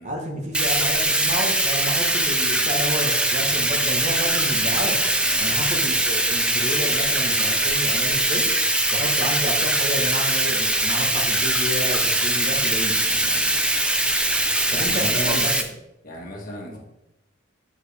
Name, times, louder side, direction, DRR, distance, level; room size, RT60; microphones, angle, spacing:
voice 1, 0.0-5.0 5.4-8.5 8.9-13.0 14.7-15.5 16.7-16.8, equal, 35° right, 1 dB, 1.2 m, -30 dB
Bathtub (filling or washing), 0.5-15.6, right 1 dB, 5° right, 0.3 m, -22 dB
voice 2, 5.2-5.5 12.9-13.5 14.7-15.5 16.0-16.8, equal, 40° left, -1 dB, 1.4 m, -34 dB
7.4 x 4.8 x 3.4 m, 0.89 s
head